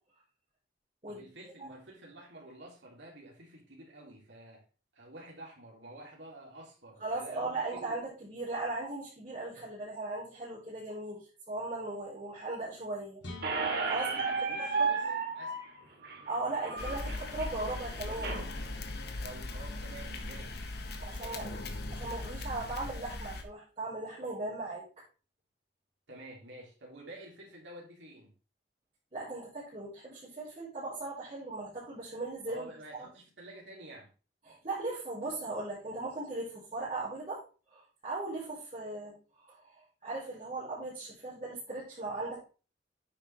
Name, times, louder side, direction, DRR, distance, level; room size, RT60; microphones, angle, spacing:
voice 1, 1.1-4.6 4.9-8.0 14.0-15.0 15.3-15.6 19.2-20.6 21.2-21.5 26.1-28.3 32.5-34.1, right 1 dB, 80° right, 3.3 m, -49 dB
voice 2, 7.0-13.2 13.9-15.2 16.3-18.4 21.0-21.6 21.9-24.8 29.1-33.1 34.4-37.4 37.7-42.4, right 2 dB, 35° right, 4.9 m, -38 dB
sound 1, 13.2-17.0, left 2 dB, 80° left, 3.3 m, -51 dB
Squeak, 13.4-18.4, right 4 dB, 60° right, 2.6 m, -34 dB
sound 2, 16.8-23.4, left 2 dB, 60° left, 1.5 m, -39 dB
9.7 x 7.3 x 3.5 m
head